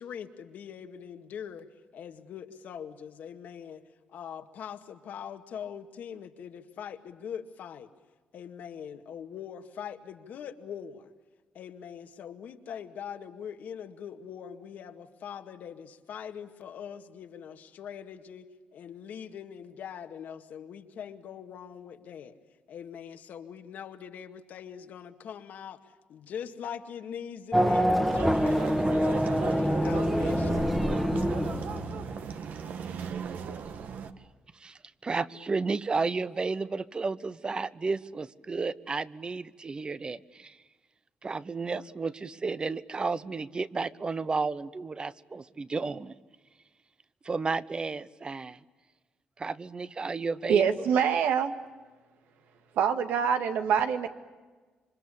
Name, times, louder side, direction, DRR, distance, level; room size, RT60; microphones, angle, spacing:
voice 1, 0.0-1.7 1.9-3.8 4.1-7.9 8.3-11.1 11.5-22.4 22.7-25.8 26.1-28.9 29.3-31.0, left 8 dB, 75° left, 6 dB, 2.1 m, -42 dB
Race car auto racing / Accelerating revving vroom, 27.5-32.2, equal, ahead, 1.6 m, -26 dB
sound 1, 28.0-34.1, right 6 dB, 70° right, 1.7 m, -36 dB
voice 2, 34.5-40.6 41.2-46.1 47.2-48.6 49.4-50.8, right 4 dB, 30° right, 16 dB, 1.0 m, -32 dB
voice 3, 50.5-51.5 52.8-54.1, right 7 dB, 90° right, 7 dB, 1.9 m, -25 dB
27.5 x 25.0 x 8.6 m, 1.3 s
cardioid pair, 95°, 3 cm